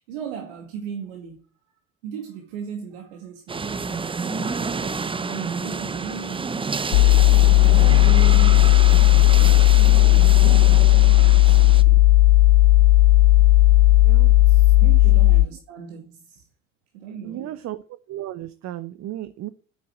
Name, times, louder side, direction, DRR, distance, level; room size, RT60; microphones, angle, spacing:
voice 1, 0.0-1.4 2.0-3.9 4.2-6.8 7.6-9.2 9.7-12.1 14.2-16.5 16.9-17.6, right 7 dB, 65° right, 2.3 m, -37 dB
sound 1, 3.5-11.8, right 4 dB, 15° right, 0.7 m, -29 dB
sound 2, 6.9-15.4, left 16 dB, 70° left, 0.6 m, -14 dB
voice 2, 14.0-14.4 14.8-15.0 17.1-19.5, right 13 dB, 40° right, 0.9 m, -35 dB
10.5 x 8.5 x 7.7 m
figure-of-eight pair, 60°, 41 cm